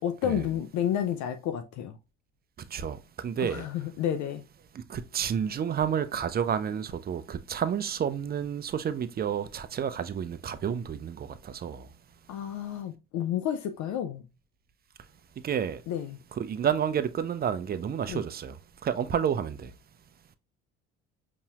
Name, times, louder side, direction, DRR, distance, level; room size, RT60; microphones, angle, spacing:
voice 1, 0.0-2.0 3.4-4.4 12.3-14.3 15.9-16.2 18.1-18.2, left 10 dB, 50° left, 0.5 m, -31 dB
voice 2, 2.6-3.7 4.7-11.9 15.4-15.8 16.4-18.6 18.8-19.7, right 8 dB, 25° right, 0.5 m, -30 dB
5.4 x 3.0 x 2.3 m
hypercardioid pair, 60°, 37 cm